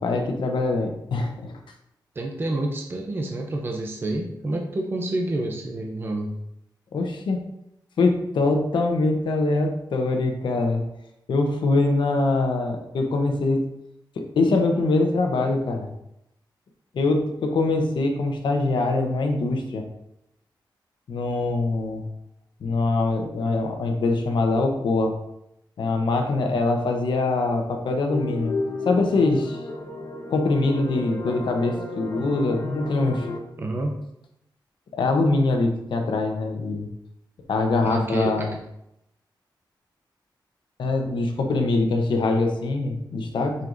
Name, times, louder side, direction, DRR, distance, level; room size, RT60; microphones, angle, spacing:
voice 1, 0.0-1.6 6.9-7.4 8.0-10.8 11.3-13.6 14.4-15.9 16.9-19.8 21.1-22.0 22.6-25.2 25.8-28.5 28.9-29.6 30.3-33.3 34.9-36.9 37.5-38.5 40.8-43.6, left 3 dB, 75° left, 3 dB, 1.0 m, -23 dB
voice 2, 2.2-6.4 33.6-34.0 37.8-38.6, right 2 dB, 30° right, 1 dB, 0.7 m, -28 dB
sound 1, 28.1-33.4, left 3 dB, 60° left, 1.4 m, -32 dB
7.8 x 5.6 x 2.7 m, 0.82 s
wide cardioid pair, 170°, 8 cm